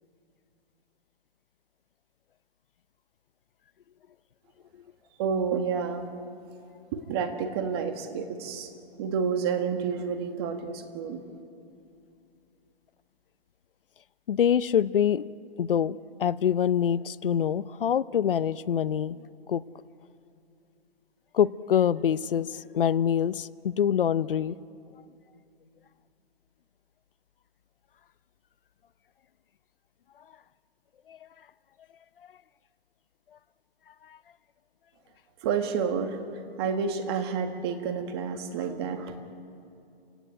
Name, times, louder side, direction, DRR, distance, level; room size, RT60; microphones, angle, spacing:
voice 1, 5.2-6.1 6.9-8.7 9.0-11.2 35.4-36.2 36.6-39.1, right 6 dB, 25° right, 6 dB, 1.8 m, -29 dB
voice 2, 14.3-15.2 15.6-19.2 19.5-19.6 21.3-24.6 31.1-31.2, left 9 dB, 60° left, 16 dB, 0.8 m, -25 dB
28.0 x 17.5 x 9.1 m, 2.6 s
hypercardioid pair, 160°, 31 cm